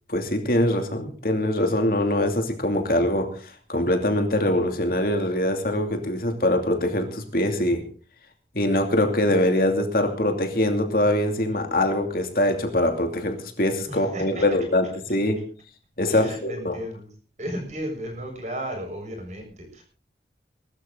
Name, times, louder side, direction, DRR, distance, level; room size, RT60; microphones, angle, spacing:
voice 1, 0.1-3.3 3.7-7.8 8.5-15.4 16.0-16.8, left 1 dB, 55° left, 4 dB, 2.7 m, -23 dB
voice 2, 13.9-14.4 16.1-17.1 17.4-19.8, equal, 40° right, 3 dB, 7.1 m, -34 dB
21.0 x 13.0 x 3.9 m, 0.39 s
head